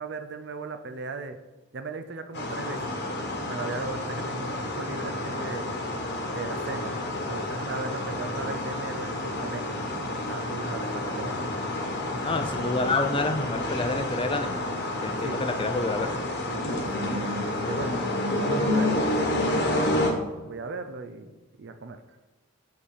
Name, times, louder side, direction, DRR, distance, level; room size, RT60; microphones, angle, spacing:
voice 1, 0.0-1.4 1.7-2.8 3.4-5.7 6.3-7.0 7.3-11.4 15.2-15.4 16.5-18.0 18.3-19.9 20.4-22.0, right 4 dB, 60° right, 8 dB, 0.5 m, -37 dB
sound 1, 2.3-20.1, left 1 dB, 55° left, 1.2 m, -29 dB
voice 2, 12.1-14.6 15.0-16.1, left 3 dB, 25° left, 7 dB, 0.5 m, -28 dB
7.9 x 4.2 x 5.0 m, 1.2 s
head